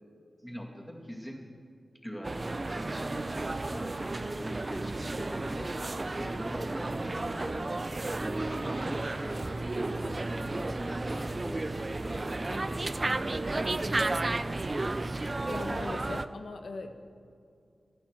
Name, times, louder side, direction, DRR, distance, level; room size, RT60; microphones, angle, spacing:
voice 1, 0.4-1.5 2.0-14.3, equal, 5° left, -1 dB, 2.2 m, -43 dB
sound 1, 2.2-16.3, right 2 dB, 30° right, 0.4 m, -33 dB
voice 2, 15.5-16.9, left 3 dB, 85° left, 5 dB, 1.0 m, -39 dB
19.0 x 12.0 x 4.5 m, 2.4 s
wide cardioid pair, 115°, 0 cm